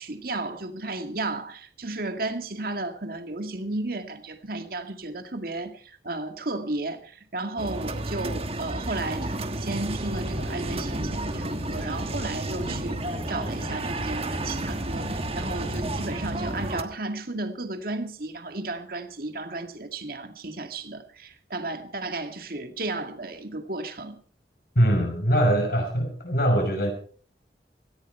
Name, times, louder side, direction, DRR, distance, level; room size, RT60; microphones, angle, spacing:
voice 1, 0.0-24.2, right 2 dB, 55° right, 2.1 m, -33 dB
sound 1, 7.6-16.8, right 1 dB, 35° right, 1.3 m, -32 dB
sound 2, 10.2-16.7, left 1 dB, 35° left, 1.0 m, -38 dB
voice 2, 24.8-26.9, equal, 55° left, 5.5 m, -22 dB
17.5 x 15.0 x 4.5 m
head